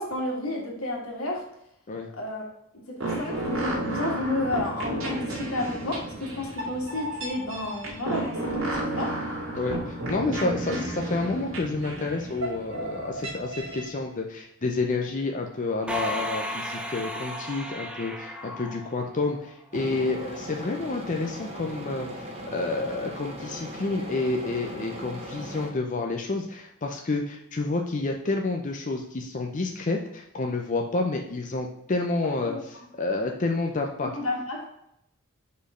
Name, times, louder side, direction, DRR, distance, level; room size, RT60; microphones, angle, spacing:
voice 1, 0.0-1.4 2.2-2.4 2.7-9.1 10.7-10.8 32.2-32.9 34.0-34.7, left 1 dB, 90° left, -1 dB, 1.9 m, -31 dB
sound 1, 3.0-13.9, right 1 dB, 70° right, 2.5 m, -32 dB
voice 2, 9.5-32.5 33.0-34.1, left 3 dB, 35° left, 2 dB, 0.6 m, -29 dB
sound 2, 15.9-19.5, equal, 5° right, 0.6 m, -34 dB
sound 3, 19.7-25.7, equal, 30° right, 1.0 m, -39 dB
5.2 x 4.6 x 5.0 m, 0.77 s
head